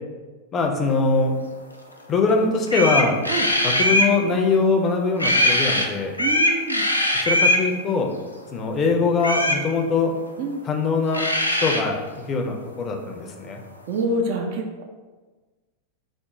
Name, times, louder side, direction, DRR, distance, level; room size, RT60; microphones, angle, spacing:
voice 1, 0.5-1.3 2.1-3.2 3.6-6.1 7.2-8.1 8.5-10.1 10.6-11.2 11.6-12.0 12.3-13.6, left 4 dB, 25° left, 2 dB, 0.4 m, -22 dB
sound 1, 2.3-2.4 2.7-4.1 5.2-5.9 6.1-7.6 9.2-9.6 10.8-10.9 11.1-11.8, left 1 dB, 85° left, 0.3 m, -20 dB
voice 2, 6.2-6.8 10.4-10.6 13.9-14.8, right 1 dB, 50° right, 2 dB, 0.4 m, -26 dB
3.0 x 2.0 x 3.6 m, 1.3 s
figure-of-eight pair, 90°, 0 cm